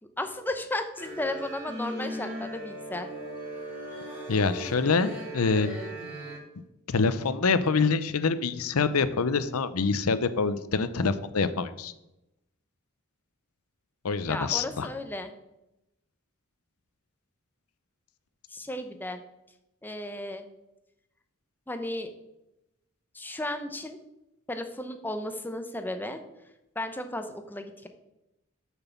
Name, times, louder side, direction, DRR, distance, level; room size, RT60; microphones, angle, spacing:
voice 1, 0.2-3.1 14.2-15.3 18.5-19.2 19.8-20.5 21.7-22.1 23.1-24.0 24.5-26.2 26.8-27.9, left 1 dB, 10° left, 7 dB, 0.8 m, -34 dB
sound 1, 1.0-6.4, equal, 5° right, 3.4 m, -38 dB
voice 2, 4.3-5.8 6.9-11.9 14.0-14.9, left 4 dB, 90° left, 13 dB, 0.7 m, -26 dB
6.8 x 6.2 x 7.1 m, 0.91 s
head